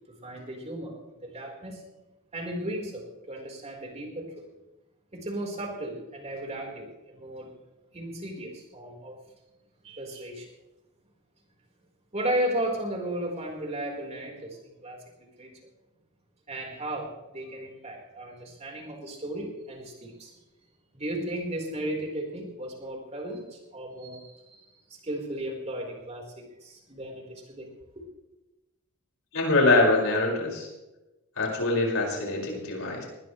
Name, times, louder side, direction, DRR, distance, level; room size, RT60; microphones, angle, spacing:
voice 1, 0.1-1.8 2.3-4.5 5.1-7.5 7.9-9.2 9.8-10.5 12.1-15.0 15.4-15.5 16.5-20.3 20.9-24.6 24.9-27.7 27.9-28.0, right 1 dB, 30° right, 0 dB, 4.6 m, -35 dB
voice 2, 29.3-30.7 31.4-33.0, left 2 dB, 65° left, -1 dB, 5.9 m, -24 dB
20.0 x 20.0 x 3.3 m, 1.0 s
head